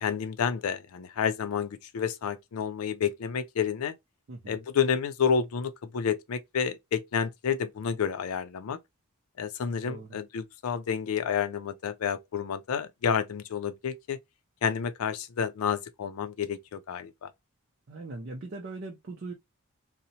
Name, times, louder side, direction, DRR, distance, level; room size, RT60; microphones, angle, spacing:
voice 1, 0.0-3.9 4.5-8.8 9.4-14.2 14.6-17.3, left 7 dB, 90° left, 0.4 m, -30 dB
voice 2, 9.9-10.2 17.9-19.3, right 2 dB, 50° right, 0.4 m, -40 dB
2.7 x 2.1 x 2.6 m
head